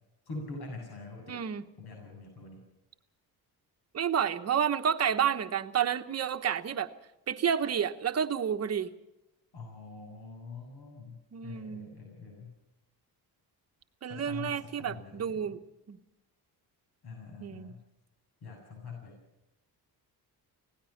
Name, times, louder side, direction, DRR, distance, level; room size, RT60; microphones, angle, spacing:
voice 1, 0.3-1.4 1.8-2.7 9.5-12.5 14.1-15.5 17.0-17.8 18.4-19.1, left 3 dB, 65° left, 1 dB, 7.4 m, -44 dB
voice 2, 1.3-1.6 3.9-6.9 7.3-8.9 11.3-11.9 14.0-15.6 15.9-16.0 17.4-17.7, right 8 dB, 40° right, 8 dB, 1.1 m, -30 dB
25.5 x 17.5 x 5.9 m, 0.93 s
cardioid pair, 165°, 41 cm